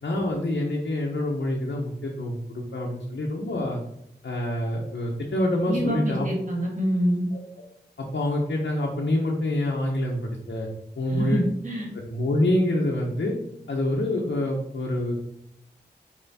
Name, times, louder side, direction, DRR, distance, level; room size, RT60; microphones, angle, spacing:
voice 1, 0.0-3.8 4.2-6.3 7.3-7.4 8.0-10.7 11.0-11.4 11.9-13.3 13.7-15.2, left 1 dB, 85° left, -2 dB, 1.0 m, -26 dB
voice 2, 5.6-7.3 11.1-11.9, equal, 45° right, 0 dB, 1.9 m, -26 dB
5.7 x 4.7 x 4.2 m, 0.76 s
wide cardioid pair, 85°, 18 cm